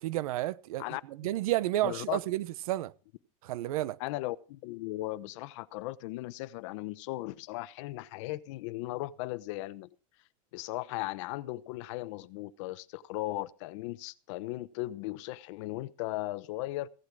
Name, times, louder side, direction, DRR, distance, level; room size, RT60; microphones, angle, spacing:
voice 1, 0.0-2.9 3.4-4.0, right 15 dB, 80° right, 1.0 m, -31 dB
voice 2, 1.8-2.2 4.0-9.9 10.5-16.9, left 17 dB, 60° left, 0.9 m, -37 dB
16.5 x 12.0 x 4.8 m
supercardioid pair, 160°, 18 cm